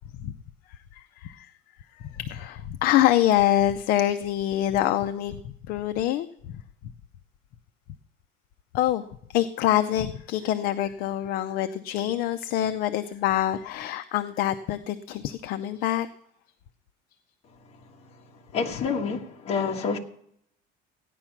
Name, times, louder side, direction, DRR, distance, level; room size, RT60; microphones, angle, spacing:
voice 1, 0.7-1.5 1.9-6.6 8.7-9.0 9.3-16.1, left 12 dB, 50° left, 0.5 m, -25 dB
voice 2, 18.5-20.0, left 5 dB, 35° left, 1.4 m, -28 dB
14.5 x 9.9 x 5.8 m
cardioid pair, 175°, 19 cm